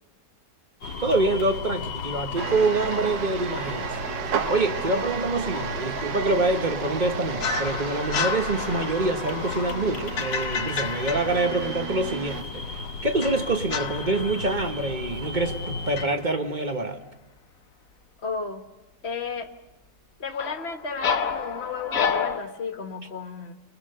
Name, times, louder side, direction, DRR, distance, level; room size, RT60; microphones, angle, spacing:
sound 1, 0.8-16.1, left 4 dB, 90° left, 2.2 m, -35 dB
voice 1, 1.0-4.0 4.5-12.7 13.0-17.0, right 2 dB, 30° right, 1.2 m, -26 dB
sound 2, 2.4-12.4, right 8 dB, 80° right, 1.7 m, -33 dB
sound 3, 7.4-12.2 13.2-15.6 16.0-16.3 20.3-22.4, left 6 dB, 55° left, 1.4 m, -31 dB
voice 2, 18.2-18.6 19.0-19.5 20.2-23.6, left 4 dB, 40° left, 1.6 m, -33 dB
29.5 x 20.5 x 6.7 m
omnidirectional pair, 1.9 m